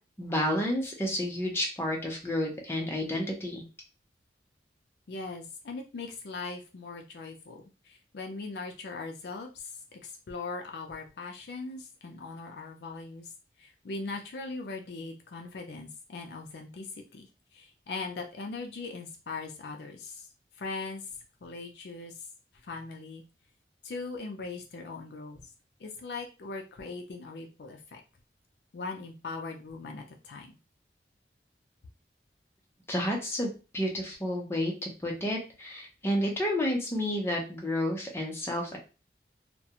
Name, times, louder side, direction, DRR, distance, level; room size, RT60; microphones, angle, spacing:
voice 1, 0.2-3.6 32.9-38.8, left 1 dB, 15° left, 0 dB, 0.7 m, -30 dB
voice 2, 5.1-13.3 13.6-17.3 17.5-20.3 20.6-21.1 21.4-22.1 22.6-23.2 23.8-25.5 25.8-28.0 28.7-30.6, left 3 dB, 65° left, 3 dB, 0.4 m, -40 dB
2.3 x 2.2 x 2.8 m, 0.31 s
head